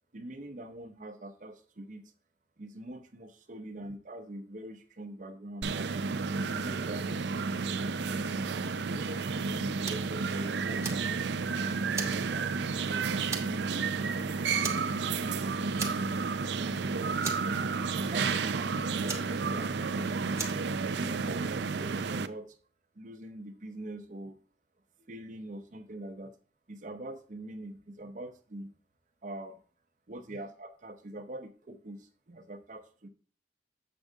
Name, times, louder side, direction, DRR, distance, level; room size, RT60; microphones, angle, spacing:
voice 1, 0.1-2.1 2.6-5.9 6.5-7.4 7.9-11.9 12.3-14.0 14.5-17.0 17.4-17.6 18.0-20.4 20.9-22.6 22.9-24.4 25.0-26.3 26.7-28.7 29.2-29.6 30.1-33.1, right 1 dB, 45° right, 6 dB, 0.8 m, -43 dB
sound 1, 5.6-22.3, right 5 dB, 75° right, 0.5 m, -31 dB
Fire, 9.8-10.2 10.6-11.5 11.9-12.9 13.3-13.7 14.0-14.2 14.6-15.3 15.8-16.4 16.6-16.7 17.2-18.0 19.1-19.9 20.4-20.7, right 4 dB, 15° right, 1.3 m, -38 dB
7.7 x 6.5 x 3.5 m, 0.39 s
head